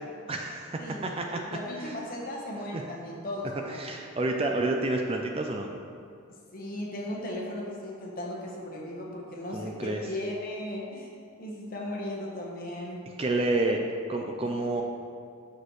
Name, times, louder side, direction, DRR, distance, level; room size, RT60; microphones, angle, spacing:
voice 1, 0.3-1.4 2.7-2.8 3.7-5.7 9.5-10.0 13.2-13.8 14.1-14.8, right 2 dB, 25° right, 2 dB, 0.4 m, -29 dB
voice 2, 0.8-3.8 6.5-11.1 11.4-13.0, left 1 dB, 40° left, -2 dB, 1.1 m, -37 dB
7.7 x 6.2 x 3.2 m, 2.3 s
head